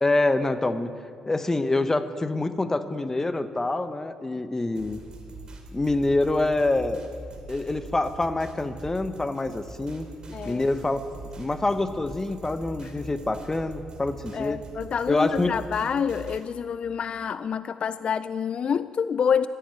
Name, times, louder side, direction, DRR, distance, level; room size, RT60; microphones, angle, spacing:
voice 1, 0.0-0.9 1.3-5.0 5.7-7.0 7.5-10.1 10.5-11.0 11.4-14.6 15.1-15.5, left 2 dB, 20° left, 11 dB, 0.8 m, -26 dB
sound 1, 4.7-16.4, right 3 dB, 40° right, 2.7 m, -43 dB
voice 2, 10.3-10.6 12.8-12.9 14.3-19.5, left 7 dB, 50° left, 14 dB, 0.4 m, -27 dB
14.0 x 10.5 x 9.0 m, 2.4 s
cardioid pair, 80°, 2 cm